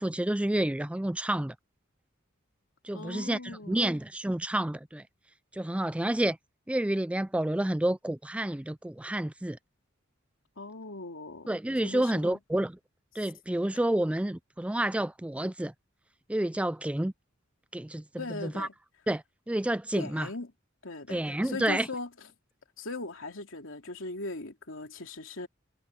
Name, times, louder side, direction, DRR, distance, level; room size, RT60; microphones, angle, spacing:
voice 1, 0.0-1.5 2.8-5.0 5.5-6.4 6.7-9.6 11.5-12.8 13.2-15.7 16.3-17.1 17.7-18.0 18.3-18.7 19.1-20.3 21.1-21.9, right 1 dB, 5° right, 0.4 m, -29 dB
voice 2, 2.9-3.9 10.6-11.5 11.8-12.4 18.2-18.7 19.9-20.5 20.8-22.1 22.8-25.5, left 2 dB, 75° left, 3.0 m, -39 dB
head